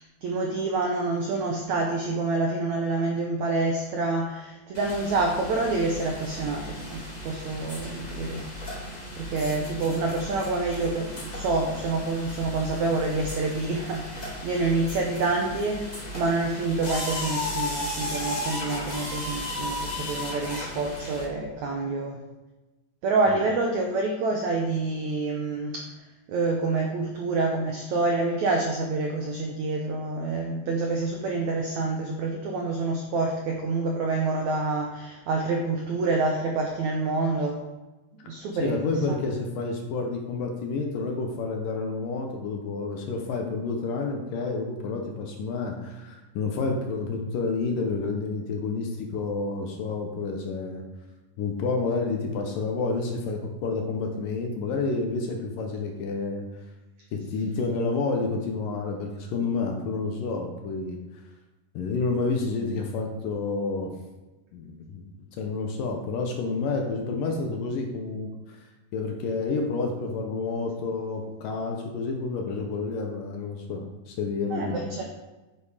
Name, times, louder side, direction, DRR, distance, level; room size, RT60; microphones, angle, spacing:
voice 1, 0.2-8.4 9.2-22.2 23.0-25.8 26.3-37.6 38.3-38.8 39.1-39.2 74.5-75.0, right 3 dB, 75° right, 1 dB, 1.7 m, -27 dB
sound 1, 4.7-21.2, left 1 dB, 25° left, 0.8 m, -35 dB
voice 2, 38.6-50.8 51.4-56.5 57.1-61.0 61.7-63.9 64.5-65.0 65.4-68.6 68.9-74.9, left 4 dB, 70° left, 2 dB, 2.3 m, -29 dB
9.5 x 7.2 x 4.9 m, 1.1 s
omnidirectional pair, 4.7 m